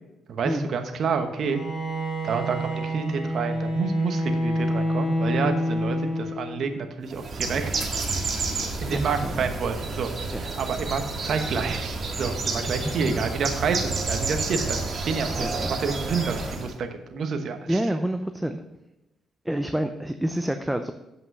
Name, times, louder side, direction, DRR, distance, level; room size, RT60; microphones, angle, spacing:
voice 1, 0.3-1.6 2.2-7.9 8.8-10.1 10.4-17.8, right 5 dB, 60° right, 6 dB, 1.1 m, -29 dB
Bowed string instrument, 1.3-6.7, equal, 45° left, 2.7 m, -27 dB
Bird, 7.1-16.7, right 3 dB, 45° right, 1.8 m, -30 dB
voice 2, 8.9-9.5 10.3-10.4 12.7-13.2 15.4-15.7 17.7-18.6 19.4-20.9, right 1 dB, 5° right, 7 dB, 0.6 m, -28 dB
8.0 x 5.5 x 6.0 m, 0.98 s
cardioid pair, 90°, 0 cm